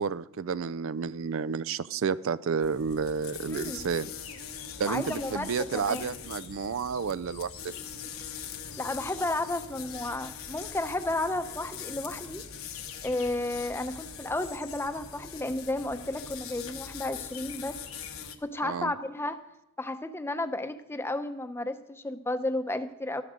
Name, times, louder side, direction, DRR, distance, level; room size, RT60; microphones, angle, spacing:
voice 1, 0.0-4.1 4.8-7.7 18.6-18.9, right 6 dB, 70° right, 18 dB, 0.4 m, -31 dB
sound 1, 2.6-18.4, left 7 dB, 85° left, 1.2 m, -42 dB
voice 2, 3.5-3.8 4.8-6.1 8.8-12.4 13.0-17.8 18.4-19.4 19.8-23.2, left 2 dB, 10° left, 9 dB, 0.7 m, -32 dB
13.5 x 11.0 x 5.1 m, 0.87 s
head